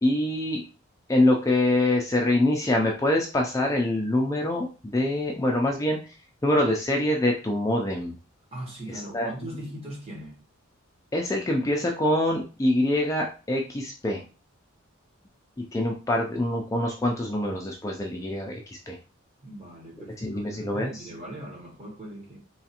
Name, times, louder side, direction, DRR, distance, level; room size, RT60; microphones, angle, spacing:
voice 1, 0.0-0.6 1.1-6.1 6.4-8.2 9.1-9.3 11.1-14.2 15.7-19.0 20.0-21.1, left 1 dB, 15° left, 0.3 m, -25 dB
voice 2, 8.5-10.4 19.4-22.4, right 1 dB, 30° right, 1.0 m, -40 dB
3.1 x 2.4 x 2.8 m
head